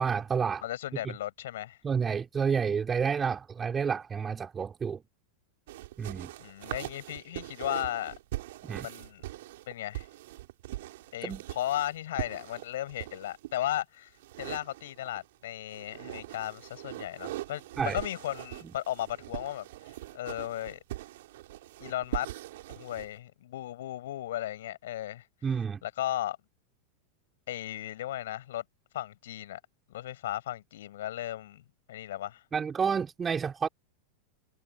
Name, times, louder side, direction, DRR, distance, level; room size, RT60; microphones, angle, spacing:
voice 1, 0.0-0.6 1.8-5.0 6.0-6.3 8.7-8.9 11.2-11.4 17.8-18.0 25.4-25.8 32.5-33.7, right 6 dB, 20° right, 5.5 m, -29 dB
voice 2, 0.6-1.8 6.4-8.1 8.8-9.2 9.7-10.1 11.1-14.1 14.4-20.8 21.8-22.3 22.7-25.3 25.8-26.4 27.5-28.6 28.9-29.6 29.9-32.4, left 13 dB, 60° left, 7.7 m, -35 dB
sound 1, 5.7-13.5 14.2-15.3 15.7-23.1, right 16 dB, 55° right, 4.7 m, -41 dB
figure-of-eight pair, 90°, 0 cm